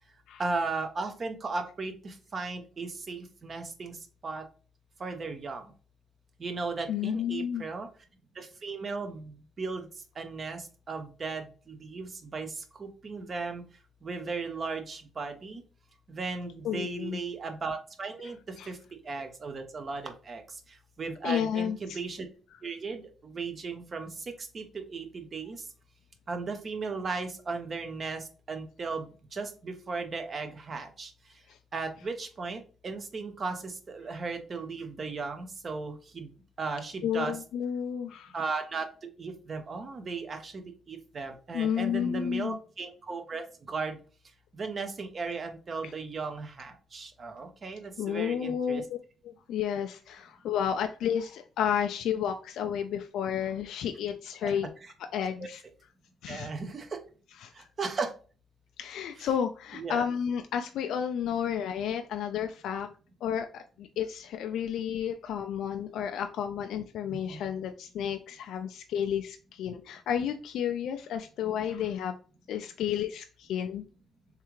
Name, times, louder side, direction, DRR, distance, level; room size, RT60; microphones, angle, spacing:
voice 1, 0.4-3.9 4.2-4.4 5.0-5.7 6.4-7.9 8.4-9.8 10.2-13.6 14.0-15.6 16.1-18.8 19.0-20.4 21.0-22.3 22.6-25.6 26.3-31.1 31.7-36.3 36.6-37.3 38.3-38.9 39.2-44.0 44.5-48.8 54.4-54.5 54.8-54.9 55.4-55.5 56.3-57.0 57.5-58.1 59.2-59.3 59.7-60.1 67.1-67.4, right 4 dB, 40° right, 6 dB, 0.8 m, -36 dB
voice 2, 6.9-7.6 16.6-17.2 18.6-18.7 21.2-22.0 31.5-31.6 37.0-38.4 41.5-42.6 48.0-49.0 49.2-54.7 55.1-55.6 56.2-56.5 57.4-57.7 58.8-62.9 63.2-72.2 72.5-73.8, left 8 dB, 80° left, 7 dB, 0.3 m, -31 dB
3.6 x 3.2 x 3.0 m, 0.37 s
cardioid pair, 90°, 0 cm